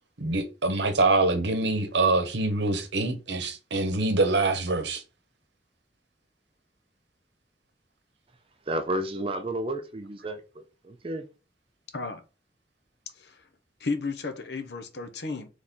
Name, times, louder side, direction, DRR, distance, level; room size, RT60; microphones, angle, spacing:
voice 1, 0.2-5.0, right 2 dB, 75° right, 0.9 m, -25 dB
voice 2, 8.7-11.3, right 1 dB, 30° right, 0.5 m, -32 dB
voice 3, 13.8-15.5, left 4 dB, 65° left, 0.7 m, -33 dB
4.1 x 3.2 x 3.6 m
head